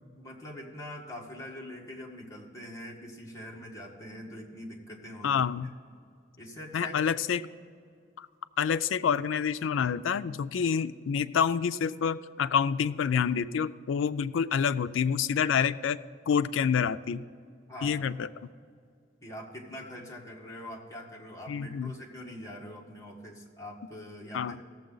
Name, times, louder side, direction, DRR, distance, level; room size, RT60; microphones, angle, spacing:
voice 1, 0.2-5.3 6.4-7.0 17.7-18.1 19.2-24.6, left 1 dB, 15° left, -3 dB, 1.6 m, -43 dB
voice 2, 5.2-5.7 6.7-7.4 8.2-8.3 8.6-16.0 16.3-17.2 17.8-18.3 21.5-21.9 24.3-24.6, left 7 dB, 80° left, 13 dB, 0.4 m, -27 dB
17.5 x 7.2 x 3.9 m, 2.2 s
head